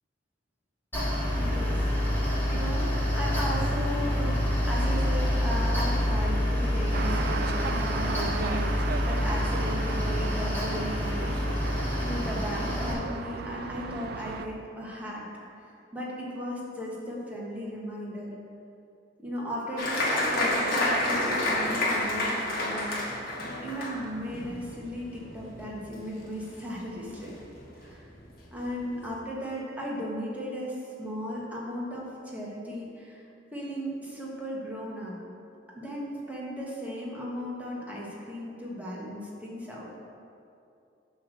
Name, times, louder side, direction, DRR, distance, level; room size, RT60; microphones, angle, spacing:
Mechanical fan, 0.9-12.9, equal, 10° left, 1.6 m, -27 dB
voice 1, 1.3-15.3 15.6-18.4 19.2-23.0 23.6-27.3 27.8-28.0 28.5-33.2 33.5-35.2 35.7-39.9, equal, 10° right, -5 dB, 1.2 m, -36 dB
sound 1, 6.9-14.5, right 5 dB, 55° right, 0.3 m, -36 dB
Applause, 19.8-26.8 27.1-27.8 28.2-28.3 28.6-29.1, left 1 dB, 50° left, 1.2 m, -29 dB
8.2 x 3.2 x 6.4 m, 2.5 s
head